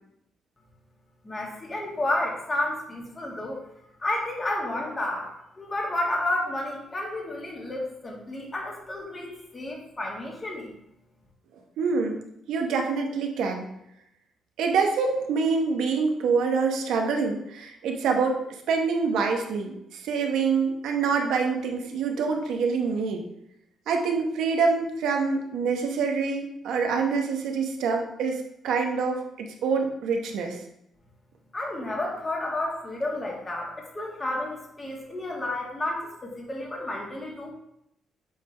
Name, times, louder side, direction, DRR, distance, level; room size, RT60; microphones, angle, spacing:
voice 1, 1.2-3.6 4.0-5.3 5.6-10.7 31.5-37.5, left 1 dB, 25° left, -1 dB, 1.7 m, -31 dB
voice 2, 11.8-13.7 14.6-23.2 23.9-30.6, right 5 dB, 80° right, 3 dB, 0.9 m, -26 dB
8.4 x 3.4 x 3.3 m, 0.79 s
cardioid pair, 90°, 0 cm